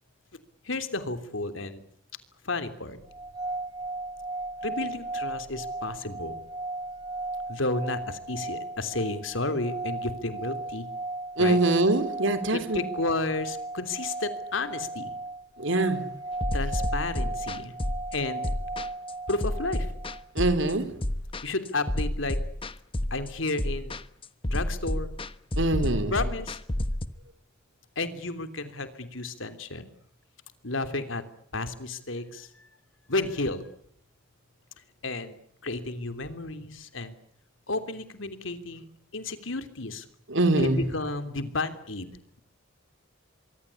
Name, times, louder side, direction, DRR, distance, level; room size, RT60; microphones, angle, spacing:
voice 1, 0.6-1.8 2.4-3.0 4.6-6.3 7.5-10.9 11.4-11.6 12.5-15.1 16.5-17.7 18.1-18.5 19.3-19.9 21.4-22.4 23.1-23.9 24.5-25.2 26.1-26.6 27.9-29.9 30.6-31.2 31.5-32.7 33.1-33.7 35.0-35.4 35.6-37.2 37.7-38.8 39.1-40.0 40.6-42.4, left 2 dB, 75° left, 3.1 m, -32 dB
sound 1, 3.1-20.2, right 2 dB, 20° right, 4.0 m, -36 dB
voice 2, 11.4-12.8 15.6-16.0 20.4-20.9 25.6-26.1 40.3-40.8, right 2 dB, 70° right, 3.7 m, -23 dB
sound 2, 16.4-27.1, left 1 dB, 25° left, 1.1 m, -30 dB
24.5 x 24.5 x 8.4 m
head